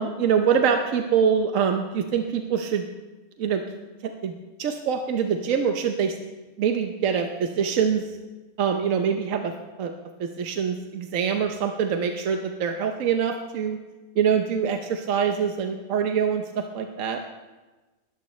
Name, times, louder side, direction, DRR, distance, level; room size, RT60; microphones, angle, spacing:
voice 1, 0.0-2.8 3.4-3.6 4.0-4.3 4.6-6.2 6.6-8.1 8.6-9.5 9.8-9.9 10.2-13.8 14.2-17.2, right 7 dB, 80° right, 5 dB, 1.2 m, -24 dB
19.5 x 13.5 x 3.1 m, 1.2 s
omnidirectional pair, 1.4 m